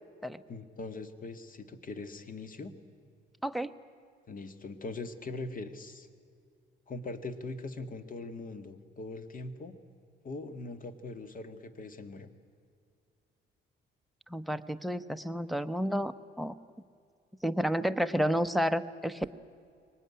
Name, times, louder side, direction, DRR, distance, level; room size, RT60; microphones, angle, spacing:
voice 1, 0.5-2.7 4.3-6.1 6.9-9.8 10.2-12.3, left 3 dB, 45° left, 11 dB, 1.8 m, -41 dB
voice 2, 14.3-16.5 17.4-19.3, equal, ahead, 14 dB, 0.9 m, -31 dB
23.0 x 19.0 x 9.8 m, 2.4 s
cardioid pair, 90°, 20 cm